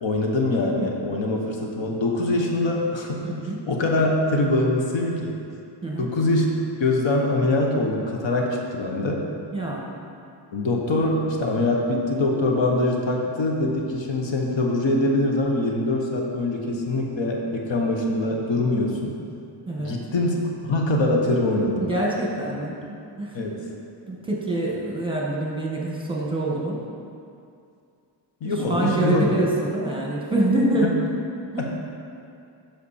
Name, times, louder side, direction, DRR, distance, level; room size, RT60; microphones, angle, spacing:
voice 1, 0.0-5.4 6.0-6.5 6.8-9.3 10.5-19.2 19.8-21.9 23.3-23.6 28.4-29.4 30.8-30.9 31.6-31.7, left 2 dB, 70° left, 0 dB, 1.1 m, -23 dB
voice 2, 3.2-3.6 5.8-6.1 9.5-9.8 19.7-20.0 21.8-23.3 24.1-26.8 28.4-30.9 31.4-31.7, right 1 dB, 10° right, -4 dB, 1.4 m, -25 dB
8.4 x 6.0 x 4.2 m, 2.5 s
wide cardioid pair, 105°, 47 cm